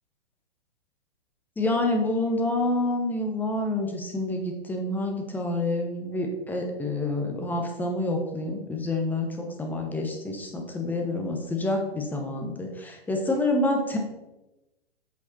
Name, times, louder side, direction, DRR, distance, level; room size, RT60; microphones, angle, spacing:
voice 1, 1.6-14.0, left 2 dB, 5° left, 2 dB, 0.9 m, -28 dB
8.0 x 4.9 x 4.2 m, 0.99 s
figure-of-eight pair, 120°, 31 cm